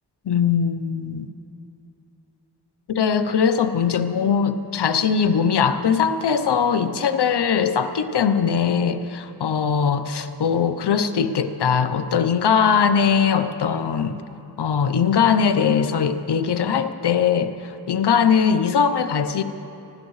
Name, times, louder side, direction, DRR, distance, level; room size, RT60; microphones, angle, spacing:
voice 1, 0.3-1.3 2.9-14.2 14.6-19.4, left 6 dB, 70° left, 10 dB, 0.8 m, -21 dB
26.5 x 13.0 x 3.2 m, 2.9 s
wide cardioid pair, 75°, 42 cm